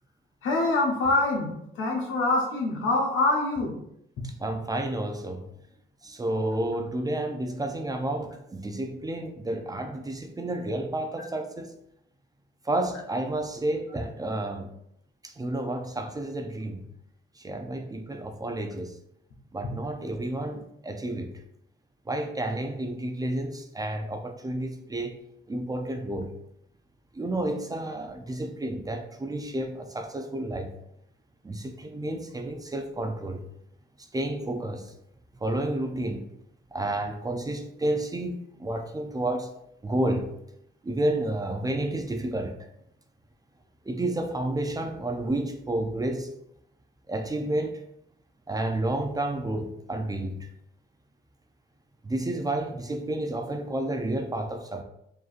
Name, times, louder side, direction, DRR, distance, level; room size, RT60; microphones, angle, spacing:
voice 1, 0.4-3.7, left 2 dB, 80° left, 1.3 m, -25 dB
voice 2, 4.2-5.5 6.0-11.8 12.6-14.7 15.2-16.8 17.4-18.9 19.5-21.4 22.1-25.1 25.5-26.3 27.1-30.7 31.4-33.4 34.0-34.9 35.4-36.3 36.7-39.5 39.8-40.3 40.8-42.6 43.9-46.3 47.1-47.8 48.5-50.5 52.0-54.8, right 1 dB, 20° right, 0.5 m, -30 dB
4.7 x 3.0 x 2.5 m
cardioid pair, 90°, 20 cm